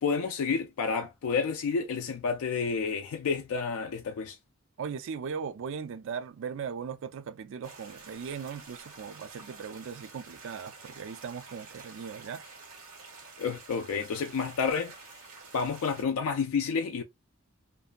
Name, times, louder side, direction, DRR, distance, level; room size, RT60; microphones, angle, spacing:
voice 1, 0.0-4.4 13.4-15.0 15.5-17.0, left 5 dB, 85° left, 0.4 m, -30 dB
voice 2, 4.8-12.4, right 6 dB, 60° right, 0.3 m, -38 dB
sound 1, 7.6-16.0, right 4 dB, 85° right, 1.1 m, -49 dB
2.6 x 2.2 x 2.4 m
head